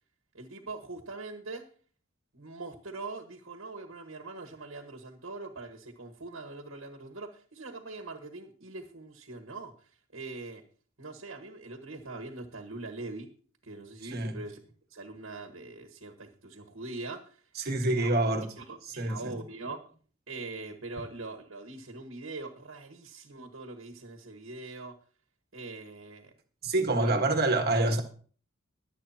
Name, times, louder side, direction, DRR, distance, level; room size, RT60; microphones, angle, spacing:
voice 1, 0.3-1.6 2.3-10.6 11.0-13.3 13.6-14.6 14.9-17.4 17.8-19.8 20.3-25.0 25.5-26.3 27.0-27.1, right 3 dB, 75° right, 1.6 m, -42 dB
voice 2, 17.5-18.5 18.8-19.4 26.6-28.0, right 2 dB, 50° right, 1.6 m, -27 dB
22.0 x 8.2 x 2.9 m
head